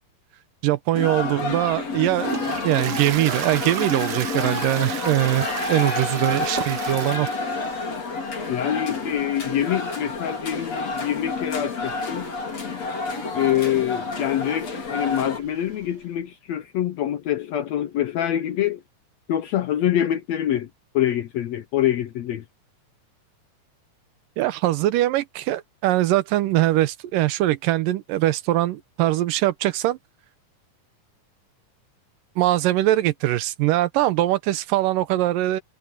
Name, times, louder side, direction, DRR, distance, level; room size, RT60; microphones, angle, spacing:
voice 1, 0.6-7.3 24.4-30.0 32.4-35.6, right 15 dB, 85° right, 2.4 m, -22 dB
sound 1, 0.9-15.4, left 3 dB, 50° left, 5.6 m, -29 dB
Toilet flush, 1.8-15.9, right 10 dB, 70° right, 1.4 m, -37 dB
voice 2, 8.5-12.3 13.3-18.8 19.3-20.7 20.9-22.4, left 11 dB, 70° left, 1.7 m, -25 dB
omnidirectional pair, 3.9 m